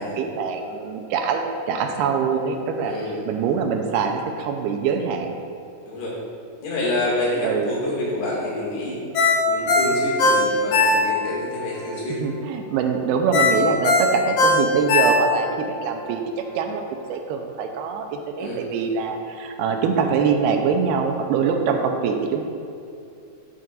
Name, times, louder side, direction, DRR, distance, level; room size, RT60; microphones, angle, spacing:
voice 1, 0.0-2.9 3.3-5.3 7.4-7.7 12.2-16.2 16.6-16.8 17.1-22.4, right 6 dB, 85° right, 4 dB, 2.6 m, -24 dB
voice 2, 2.8-3.2 5.9-6.1 6.6-9.0 9.5-12.2 18.4-18.9, left 1 dB, 90° left, -6 dB, 4.3 m, -27 dB
Ringtone, 9.1-11.4 11.8-11.9 13.3-15.6 16.0-16.1, left 2 dB, 65° left, 2.2 m, -19 dB
12.5 x 7.4 x 2.5 m, 2.6 s
omnidirectional pair, 4.6 m